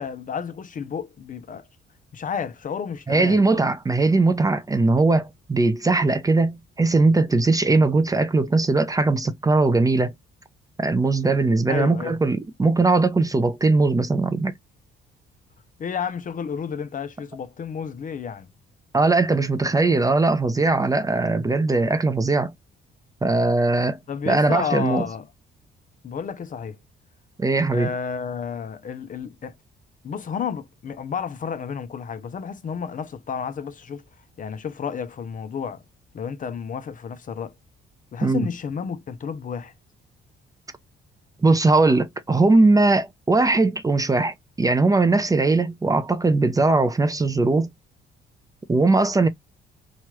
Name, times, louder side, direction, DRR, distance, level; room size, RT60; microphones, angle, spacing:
voice 1, 0.0-1.7 2.1-3.4 11.7-12.2 15.8-18.5 24.1-25.3 26.0-26.8 27.7-29.5 30.0-34.0 34.4-35.8 36.1-37.5 38.1-39.7, left 7 dB, 40° left, 0.5 m, -31 dB
voice 2, 3.1-10.1 10.8-14.5 18.9-22.5 23.2-24.0 24.3-25.0 27.4-27.9 38.2-38.5 41.4-47.7 48.7-49.3, right 3 dB, 15° right, 0.5 m, -20 dB
3.0 x 2.3 x 3.0 m
cardioid pair, 90°, 20 cm